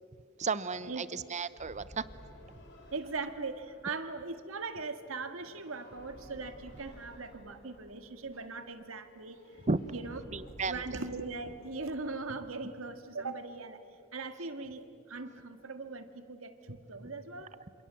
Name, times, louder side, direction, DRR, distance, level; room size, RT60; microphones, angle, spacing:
voice 1, 0.4-2.0 9.7-9.8 10.3-10.8, right 4 dB, 35° right, 15 dB, 0.8 m, -33 dB
sound 1, 1.6-12.8, equal, 55° left, 4.4 m, -54 dB
voice 2, 2.9-9.4 9.9-10.2 10.7-13.8 14.1-17.5, right 3 dB, 90° right, 8 dB, 1.9 m, -40 dB
27.5 x 27.0 x 7.7 m, 2.4 s
head